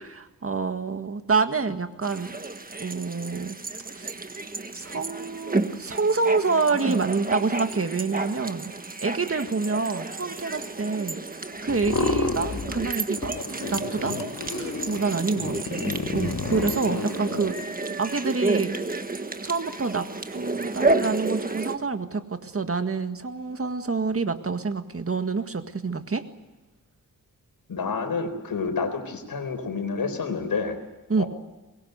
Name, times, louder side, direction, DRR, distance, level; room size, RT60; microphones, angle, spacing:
voice 1, 0.1-2.3 2.8-3.6 3.9-4.1 4.7-8.7 9.0-11.2 11.6-13.3 13.7-14.2 14.6-15.8 16.1-17.5 18.0-18.8 19.4-20.1 20.3-26.2 31.1-31.2, right 4 dB, 40° right, 8 dB, 1.8 m, -27 dB
sound 1, 2.0-21.8, right 3 dB, 25° right, 1.5 m, -31 dB
sound 2, 11.7-12.9 13.2-17.5, left 4 dB, 50° left, 1.8 m, -30 dB
voice 2, 27.7-30.8 31.2-31.3, left 4 dB, 90° left, 8 dB, 4.2 m, -29 dB
24.0 x 21.5 x 8.1 m, 1.1 s
wide cardioid pair, 95°, 34 cm